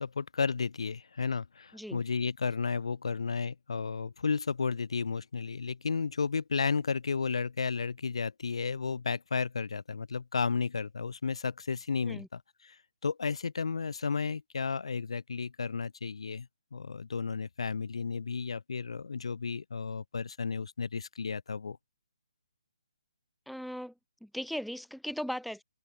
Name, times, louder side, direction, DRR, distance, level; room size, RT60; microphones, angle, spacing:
voice 1, 0.0-12.8 13.0-21.8, left 5 dB, 60° left, 0.6 m, -33 dB
voice 2, 23.5-23.9 24.2-25.6, equal, ahead, 0.4 m, -38 dB
figure-of-eight pair, 140°, 3 cm